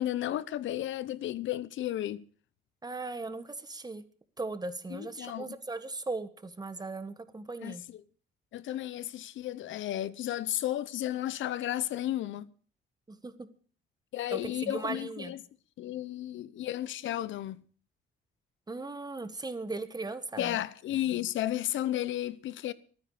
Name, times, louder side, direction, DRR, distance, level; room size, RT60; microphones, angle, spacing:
voice 1, 0.0-2.2 4.9-5.5 7.6-7.8 8.5-12.5 14.1-15.4 15.8-17.6 20.4-22.7, left 13 dB, 75° left, 0.8 m, -33 dB
voice 2, 2.8-4.0 4.4-7.8 13.1-13.3 14.3-15.3 18.7-20.6, right 3 dB, 20° right, 1.6 m, -38 dB
22.5 x 9.9 x 5.0 m
cardioid pair, 90°, 20 cm